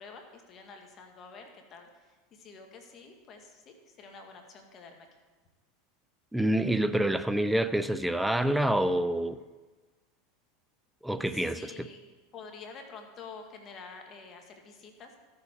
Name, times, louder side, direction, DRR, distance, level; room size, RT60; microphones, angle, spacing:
voice 1, 0.0-5.1 11.3-12.0 12.3-15.2, left 4 dB, 40° left, 1.7 m, -48 dB
voice 2, 6.3-9.4 11.0-11.9, right 1 dB, 5° right, 0.5 m, -27 dB
13.5 x 6.9 x 4.5 m
hypercardioid pair, 100°, 0 cm